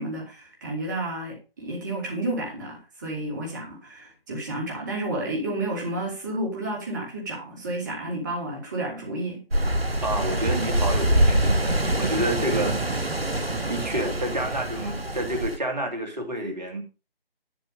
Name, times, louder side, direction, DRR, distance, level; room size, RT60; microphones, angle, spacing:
voice 1, 0.0-9.4, right 1 dB, 20° right, 2.7 m, -31 dB
sound 1, 9.5-15.6, right 1 dB, 80° right, 1.3 m, -25 dB
voice 2, 10.0-13.0 13.7-16.8, right 1 dB, 45° right, 2.8 m, -29 dB
11.0 x 6.6 x 5.2 m
figure-of-eight pair, 155°, 29 cm